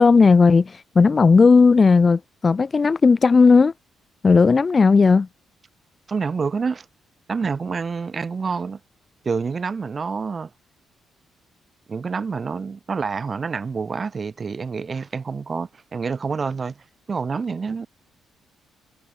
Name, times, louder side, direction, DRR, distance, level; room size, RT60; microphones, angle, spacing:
voice 1, 0.0-3.7 4.2-5.3, left 4 dB, 35° left, 0.3 m, -15 dB
voice 2, 6.1-6.8 7.3-8.8 9.2-10.5 11.9-16.8 17.1-17.9, right 5 dB, 35° right, 1.1 m, -27 dB
cardioid pair, 90°, 0 cm